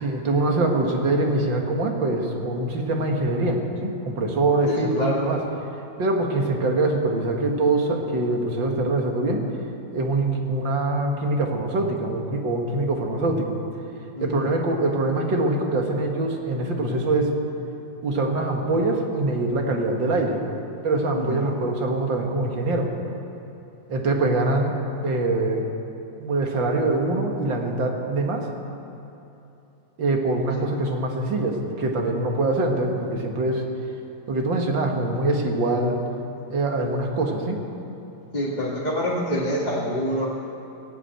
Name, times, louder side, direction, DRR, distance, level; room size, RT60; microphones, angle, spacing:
voice 1, 0.0-5.4 6.0-9.4 9.9-13.5 14.2-17.3 18.0-20.4 20.8-22.9 23.9-24.8 25.0-25.7 26.2-28.5 30.0-33.6 34.3-36.0 36.5-37.6, right 2 dB, 75° right, 1 dB, 2.4 m, -24 dB
voice 2, 4.6-5.3 14.2-14.4 21.1-21.5 30.6-30.7 38.3-40.3, equal, 25° left, -7 dB, 2.1 m, -26 dB
17.5 x 8.5 x 9.1 m, 2.9 s
omnidirectional pair, 2.1 m